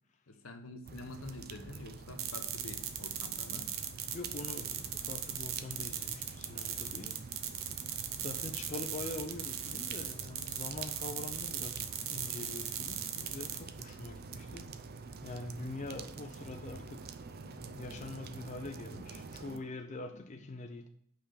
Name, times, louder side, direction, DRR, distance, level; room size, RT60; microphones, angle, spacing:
voice 1, 0.3-3.8, left 2 dB, 75° left, 1.0 m, -47 dB
sound 1, 0.8-19.6, right 4 dB, 45° right, 0.5 m, -47 dB
sound 2, 2.2-13.6, right 9 dB, 70° right, 0.9 m, -38 dB
voice 2, 4.1-7.2 8.2-14.7 15.0-20.9, left 2 dB, 35° left, 0.6 m, -44 dB
5.8 x 5.0 x 6.7 m
head